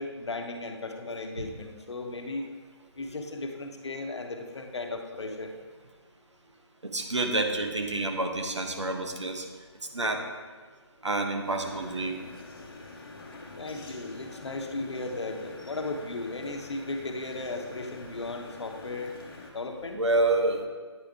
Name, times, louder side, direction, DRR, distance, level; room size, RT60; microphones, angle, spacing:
voice 1, 0.0-2.5 3.0-5.5 13.6-19.1 19.5-20.0, left 2 dB, 70° left, 4 dB, 1.0 m, -36 dB
voice 2, 6.8-9.5 9.9-10.2 11.0-12.2 19.9-20.7, right 2 dB, 85° right, 3 dB, 1.1 m, -28 dB
sound 1, 11.5-19.5, left 3 dB, 50° left, 1.0 m, -46 dB
9.2 x 5.0 x 3.5 m, 1.5 s
figure-of-eight pair, 150°, 15 cm